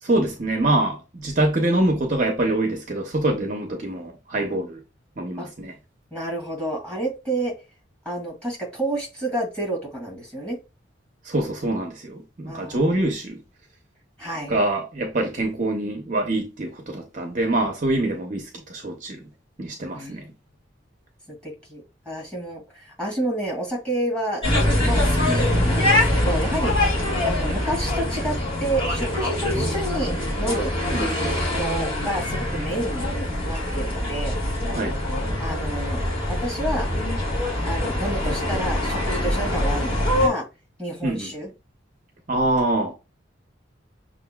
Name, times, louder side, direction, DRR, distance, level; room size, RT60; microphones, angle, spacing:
voice 1, 0.0-4.8 5.2-5.7 11.2-13.4 14.5-19.3 19.6-20.3 30.9-31.2 34.7-34.9 41.0-41.3 42.3-43.0, right 1 dB, 40° right, 0.7 m, -25 dB
voice 2, 6.1-7.5 8.1-10.6 12.5-12.9 14.2-14.5 19.9-20.3 21.3-24.4 24.8-26.9 27.2-30.7 31.0-34.3 35.4-36.9 37.6-40.5 40.8-41.5, right 1 dB, 5° left, 2.1 m, -29 dB
sound 1, 24.4-40.3, left 1 dB, 30° left, 1.8 m, -24 dB
6.3 x 2.5 x 2.3 m
head